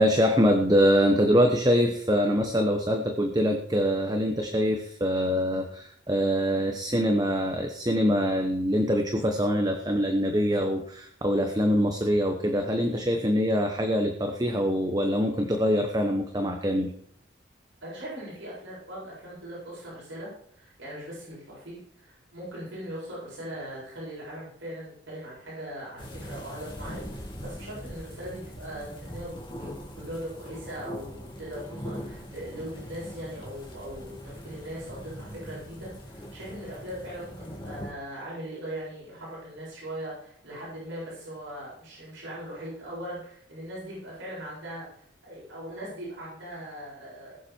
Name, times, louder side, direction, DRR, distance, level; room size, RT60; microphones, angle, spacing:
voice 1, 0.0-16.9, equal, 20° right, 4 dB, 1.0 m, -24 dB
voice 2, 17.8-47.4, equal, 75° right, -6 dB, 7.4 m, -40 dB
sound 1, 26.0-37.9, equal, 25° left, 2.5 m, -41 dB
20.0 x 7.5 x 4.6 m, 0.63 s
head